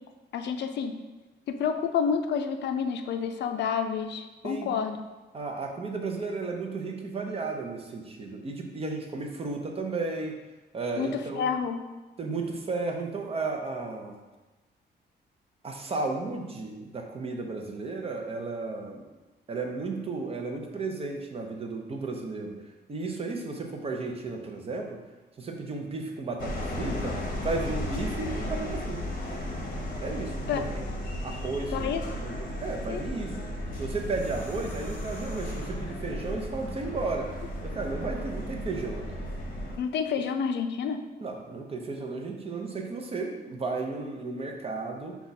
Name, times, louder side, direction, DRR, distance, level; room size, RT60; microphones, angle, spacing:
voice 1, 0.3-0.9 1.5-5.0 11.0-11.8 30.5-30.6 31.7-32.0 32.9-33.1 39.8-41.0, left 6 dB, 75° left, 7 dB, 0.4 m, -29 dB
voice 2, 5.3-10.4 10.7-11.5 12.2-14.1 15.6-19.0 19.5-22.6 22.9-25.0 25.4-27.2 27.4-29.0 30.0-30.8 31.2-31.9 32.2-33.4 33.8-37.3 37.6-39.3 41.2-45.2, right 3 dB, 35° right, 2 dB, 0.6 m, -34 dB
sound 1, 26.4-39.8, left 1 dB, 50° left, 0.8 m, -34 dB
5.0 x 2.3 x 4.0 m, 1.1 s
cardioid pair, 125°, 18 cm